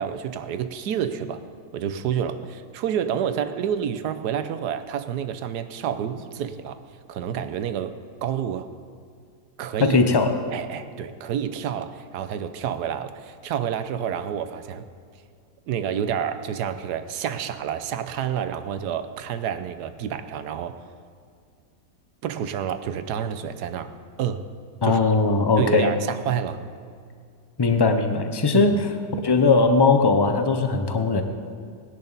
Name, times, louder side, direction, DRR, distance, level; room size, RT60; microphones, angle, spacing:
voice 1, 0.0-1.4 1.7-6.8 7.1-8.7 9.6-10.0 10.5-14.9 15.7-20.7 22.2-23.9 24.2-24.4 24.8-25.0 25.6-26.6 28.5-28.7, right 8 dB, 85° right, 10 dB, 1.3 m, -29 dB
voice 2, 9.8-10.3 24.8-25.9 27.6-28.9 29.2-31.2, left 4 dB, 30° left, 6 dB, 0.4 m, -19 dB
19.0 x 10.5 x 4.0 m, 2.2 s
omnidirectional pair, 1.7 m